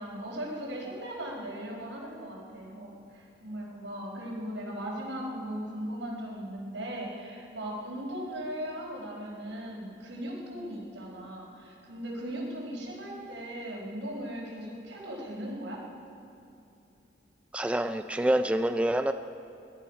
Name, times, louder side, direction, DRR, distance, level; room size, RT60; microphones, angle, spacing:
voice 1, 0.0-15.8, equal, 85° right, -3 dB, 4.7 m, -38 dB
voice 2, 17.5-19.1, right 1 dB, 5° right, 8 dB, 0.3 m, -26 dB
21.0 x 12.0 x 5.7 m, 2.8 s
head